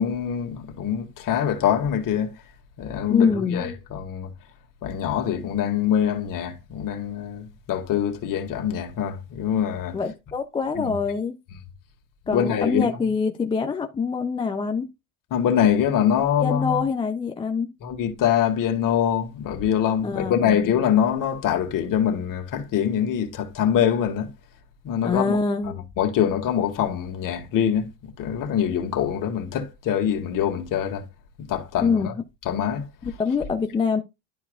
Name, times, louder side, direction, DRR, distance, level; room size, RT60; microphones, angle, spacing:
voice 1, 0.0-2.3 2.8-4.3 4.8-10.0 10.8-10.9 12.3-12.9 15.3-16.8 17.8-24.3 24.8-25.4 26.0-27.9 28.2-31.0 31.4-32.1 32.5-32.9, left 9 dB, 40° left, 2.1 m, -24 dB
voice 2, 3.1-3.8 9.9-11.4 12.3-14.9 16.4-17.7 20.0-20.6 25.0-25.9 31.8-32.2 33.0-34.0, left 5 dB, 10° left, 0.4 m, -25 dB
12.0 x 4.7 x 2.4 m
supercardioid pair, 120°, 47 cm